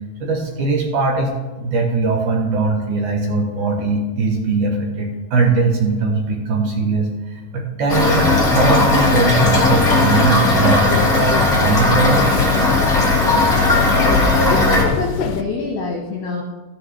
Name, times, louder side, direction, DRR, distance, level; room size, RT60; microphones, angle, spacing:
voice 1, 0.2-12.4, right 3 dB, 70° right, 1 dB, 2.2 m, -20 dB
Toilet flush / Fill (with liquid), 7.9-14.8, left 2 dB, 40° left, 0.7 m, -17 dB
sound 1, 8.0-15.4, left 7 dB, 80° left, 2.1 m, -24 dB
voice 2, 14.4-16.4, left 3 dB, 65° left, -1 dB, 2.0 m, -24 dB
13.0 x 9.6 x 3.3 m, 1.3 s
omnidirectional pair, 4.4 m